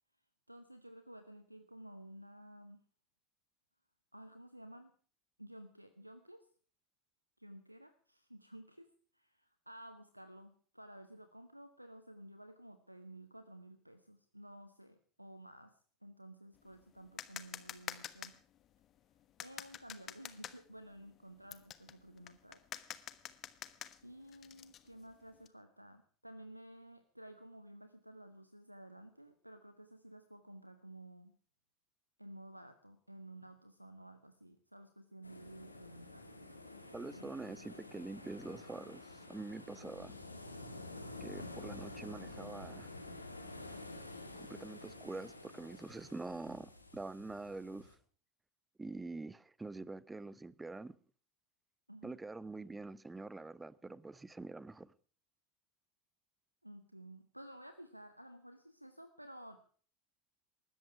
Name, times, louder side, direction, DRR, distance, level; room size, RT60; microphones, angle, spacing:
voice 1, 0.5-2.8 4.1-4.9 5.4-6.5 7.4-18.3 19.4-22.6 24.0-31.4 32.2-36.3 37.2-37.5 40.5-40.8 41.4-41.5 51.9-52.2 56.6-59.7, right 1 dB, 90° right, 0.9 m, -54 dB
sound 1, 16.6-25.5, left 10 dB, 35° left, 1.3 m, -48 dB
sound 2, 35.2-47.9, left 2 dB, 85° left, 2.0 m, -50 dB
voice 2, 36.9-40.2 41.2-42.9 44.4-47.9 48.8-51.0 52.0-54.9, right 3 dB, 10° right, 0.8 m, -45 dB
19.5 x 14.0 x 4.7 m
figure-of-eight pair, 75°, 0 cm